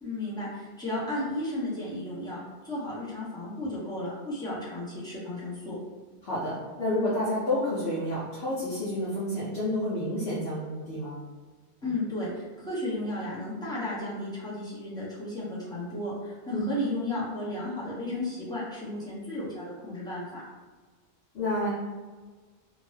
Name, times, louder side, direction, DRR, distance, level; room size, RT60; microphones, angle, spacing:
voice 1, 0.0-2.4 2.6-5.8 11.8-20.4, left 1 dB, 5° left, -9 dB, 0.7 m, -34 dB
voice 2, 6.2-11.2 11.8-11.9 16.5-16.6 21.3-21.7, left 1 dB, 75° left, -10 dB, 1.0 m, -29 dB
2.7 x 2.1 x 3.1 m, 1.4 s
omnidirectional pair, 1.1 m